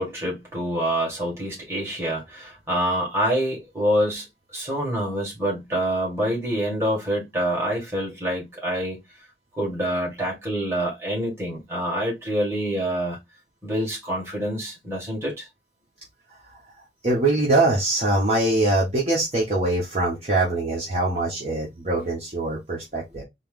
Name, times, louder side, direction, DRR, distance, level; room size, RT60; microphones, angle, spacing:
voice 1, 0.0-4.3 4.5-9.0 9.5-13.2 13.6-15.5, equal, 15° right, 1.7 m, -26 dB
voice 2, 17.0-23.2, right 2 dB, 35° right, 1.1 m, -23 dB
4.3 x 2.1 x 3.7 m
head